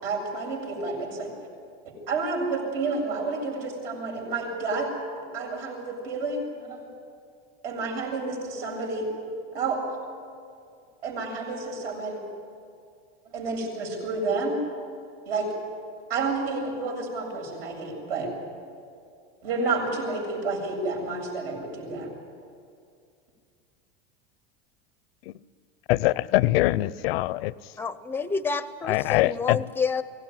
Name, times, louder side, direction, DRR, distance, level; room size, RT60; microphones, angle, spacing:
voice 1, 0.0-1.3 2.1-4.9 5.3-6.9 7.6-9.1 9.5-9.8 11.0-12.2 13.3-14.6 15.3-15.5 16.1-18.3 19.4-22.1, right 3 dB, 75° right, 1 dB, 7.7 m, -30 dB
voice 2, 25.9-27.5 28.8-29.6, left 18 dB, 75° left, 20 dB, 0.6 m, -23 dB
voice 3, 27.8-30.0, left 5 dB, 5° left, 14 dB, 0.6 m, -29 dB
23.5 x 17.5 x 9.8 m, 2.3 s
supercardioid pair, 150°, 30 cm